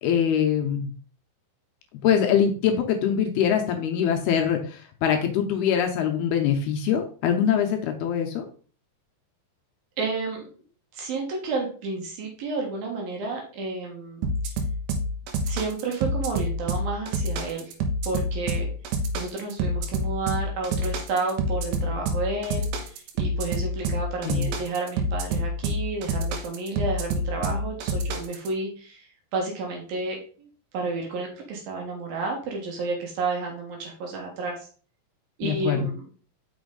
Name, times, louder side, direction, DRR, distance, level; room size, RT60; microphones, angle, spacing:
voice 1, 0.0-0.9 2.0-8.5 24.2-24.5 35.4-35.9, left 8 dB, 80° left, 4 dB, 2.6 m, -23 dB
voice 2, 10.0-10.4 10.9-14.6 15.4-17.7 18.0-18.7 19.1-30.5 30.7-34.7 35.4-36.0, right 3 dB, 65° right, 1 dB, 3.0 m, -31 dB
sound 1, 14.2-28.5, right 1 dB, 85° right, 3.3 m, -27 dB
6.2 x 6.1 x 3.8 m, 0.40 s
omnidirectional pair, 5.0 m